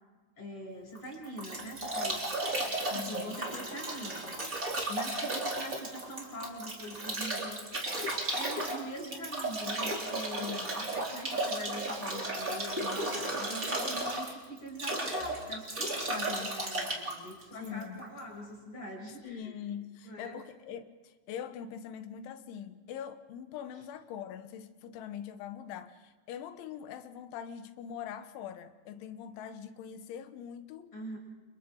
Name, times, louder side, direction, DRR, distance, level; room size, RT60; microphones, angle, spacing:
voice 1, 0.4-2.3 2.9-4.3 4.9-7.8 8.3-19.6 20.0-20.4 30.9-31.2, equal, 25° left, 7.8 m, -43 dB
Bathtub (filling or washing) / Drip / Trickle dribble, 1.0-18.2, right 1 dB, 20° right, 3.2 m, -34 dB
voice 2, 2.7-3.4 10.3-10.8 16.1-16.5 17.6-18.0 19.2-30.9, left 9 dB, 80° left, 3.5 m, -43 dB
30.0 x 29.5 x 3.9 m
omnidirectional pair, 5.4 m